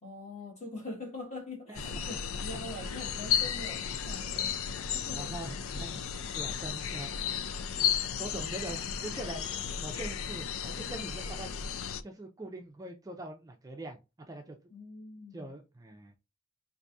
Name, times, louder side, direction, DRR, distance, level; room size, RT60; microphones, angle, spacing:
voice 1, 0.0-5.3 14.7-15.4, left 2 dB, 35° left, 1.7 m, -44 dB
sound 1, 1.7-12.0, left 8 dB, 75° left, 0.4 m, -34 dB
voice 2, 1.7-2.2 2.7-2.9 5.1-6.0 6.3-7.3 8.2-9.5 9.8-11.5 12.0-14.6 15.3-16.1, right 1 dB, 15° right, 0.5 m, -43 dB
4.6 x 2.6 x 2.6 m
head